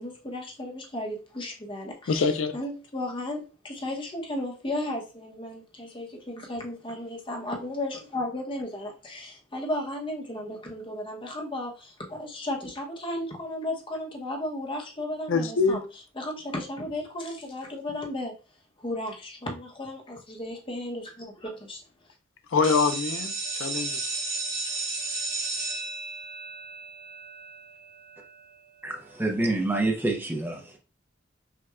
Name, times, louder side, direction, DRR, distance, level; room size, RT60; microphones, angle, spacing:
voice 1, 0.0-15.8 16.2-18.3 18.8-21.8, left 1 dB, 25° left, 0.8 m, -34 dB
voice 2, 2.1-2.6 15.3-15.8 22.5-24.0, left 4 dB, 80° left, 0.4 m, -24 dB
sound 1, 22.6-28.3, right 3 dB, 90° right, 1.8 m, -33 dB
voice 3, 28.8-30.8, right 2 dB, 10° right, 0.4 m, -27 dB
5.7 x 2.2 x 2.3 m
head